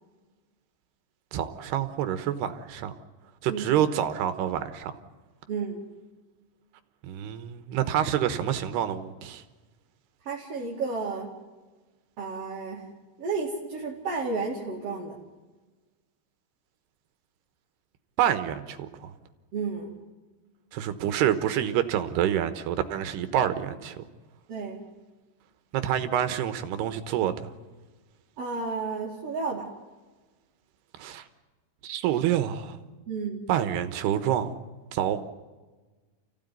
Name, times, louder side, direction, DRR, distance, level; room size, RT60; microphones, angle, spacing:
voice 1, 1.3-2.9 3.4-4.9 7.0-9.4 18.2-19.1 20.7-24.1 25.7-27.5 31.0-31.2 31.8-32.8 33.5-34.6 34.9-35.2, right 10 dB, 75° right, 3.2 m, -27 dB
voice 2, 5.5-5.9 10.2-11.3 12.2-12.9 13.2-15.2 19.5-20.0 24.5-24.8 28.4-29.7 33.1-33.4, right 4 dB, 40° right, 3.1 m, -32 dB
29.5 x 16.0 x 9.5 m
omnidirectional pair, 4.9 m